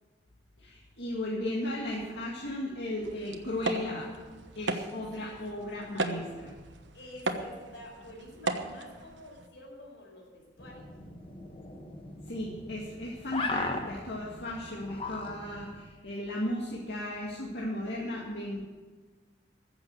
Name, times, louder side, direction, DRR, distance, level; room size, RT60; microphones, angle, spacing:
voice 1, 0.6-6.6 12.3-18.6, left 1 dB, 70° left, -4 dB, 2.0 m, -36 dB
sound 1, 3.0-9.5, right 2 dB, 85° right, 1.2 m, -37 dB
voice 2, 6.9-10.9, left 1 dB, 90° left, 0 dB, 4.6 m, -49 dB
sound 2, 10.6-15.8, left 3 dB, 30° left, 1.2 m, -38 dB
15.0 x 7.3 x 7.9 m, 1.4 s
head